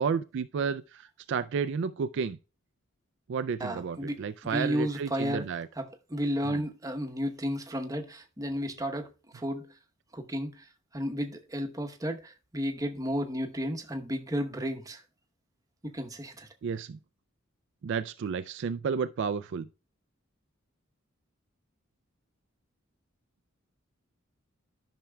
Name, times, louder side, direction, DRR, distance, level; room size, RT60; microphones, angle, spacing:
voice 1, 0.0-2.4 3.3-5.7 6.5-6.6 16.6-17.0 17.8-19.7, right 6 dB, 60° right, 0.4 m, -31 dB
voice 2, 3.6-5.5 5.8-9.7 10.1-10.7 10.9-15.0 15.8-16.5, equal, 15° right, 0.9 m, -33 dB
13.5 x 5.9 x 2.2 m
head